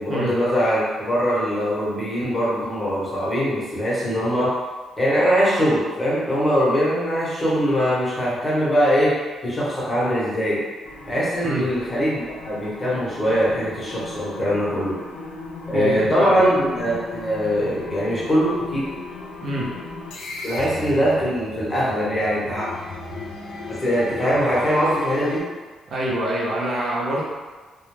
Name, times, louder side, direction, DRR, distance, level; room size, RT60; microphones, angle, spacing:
voice 1, 0.0-4.5 5.0-9.1 9.4-10.6 11.1-14.9 15.7-18.8 20.4-22.7 23.8-25.4, equal, 20° left, -8 dB, 1.0 m, -22 dB
sound 1, 10.8-25.4, left 2 dB, 85° left, 0.4 m, -36 dB
voice 2, 15.7-16.4 19.4-19.7 25.9-27.2, right 1 dB, 55° right, -5 dB, 0.6 m, -25 dB
2.2 x 2.1 x 3.1 m, 1.4 s
cardioid pair, 90°, 0 cm